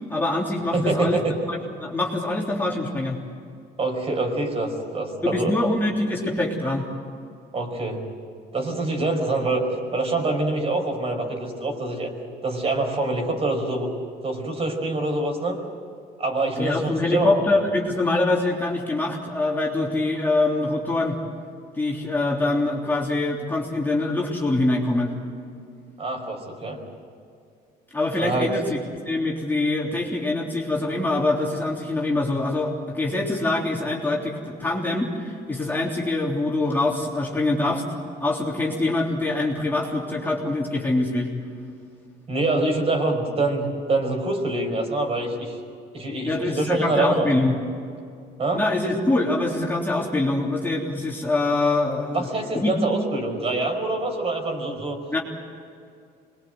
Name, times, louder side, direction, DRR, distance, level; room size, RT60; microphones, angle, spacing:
voice 1, 0.1-1.2 1.5-3.2 5.2-6.9 16.6-21.2 21.8-25.1 27.9-28.8 29.1-37.8 38.2-41.3 46.2-47.6 48.5-52.3 52.5-52.7 55.1-55.2, left 2 dB, 10° left, -3 dB, 3.4 m, -24 dB
voice 2, 0.7-1.4 3.8-5.6 7.5-8.0 8.5-9.7 9.9-12.1 12.4-13.9 14.2-15.6 16.2-17.4 26.0-26.8 28.2-28.5 42.3-45.6 45.9-47.3 48.4-48.6 52.1-55.0, right 2 dB, 35° right, 2 dB, 5.3 m, -25 dB
25.5 x 21.5 x 7.9 m, 2.4 s
cardioid pair, 110°, 17 cm